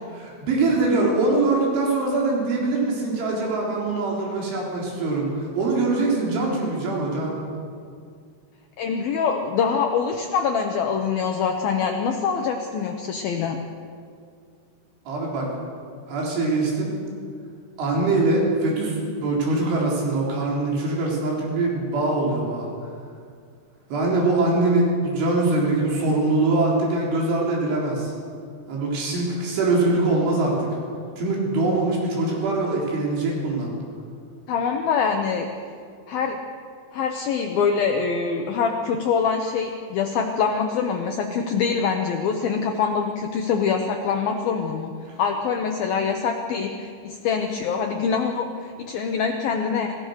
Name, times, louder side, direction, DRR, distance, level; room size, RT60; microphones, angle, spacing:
voice 1, 0.1-7.4 15.1-15.5 16.1-17.0 17.8-22.7 23.9-28.1 28.7-30.7 31.2-33.7, right 2 dB, 80° right, -3 dB, 6.2 m, -23 dB
voice 2, 8.8-13.6 34.5-35.5 36.1-36.4 36.9-44.9 45.2-49.9, left 6 dB, 70° left, 4 dB, 2.4 m, -24 dB
27.5 x 17.0 x 6.5 m, 2.2 s
omnidirectional pair, 5.4 m